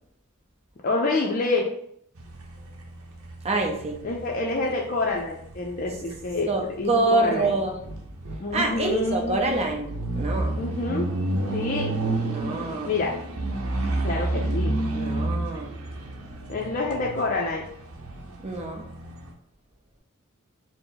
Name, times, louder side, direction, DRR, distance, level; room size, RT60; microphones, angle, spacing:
voice 1, 0.8-1.7 4.0-6.5 6.8-6.9 7.2-7.5 8.4-9.4 10.5-11.1 11.5-11.9 12.9-13.1 14.0-14.7 16.5-17.6, left 3 dB, 40° left, -2 dB, 0.4 m, -27 dB
sound 1, 2.2-19.3, right 2 dB, 80° right, 0.7 m, -31 dB
voice 2, 3.4-4.0 6.5-7.8 8.5-10.6 12.3-12.9 14.9-15.7 18.4-18.9, right 2 dB, 30° right, 2 dB, 0.7 m, -26 dB
4.5 x 2.0 x 3.9 m, 0.70 s
head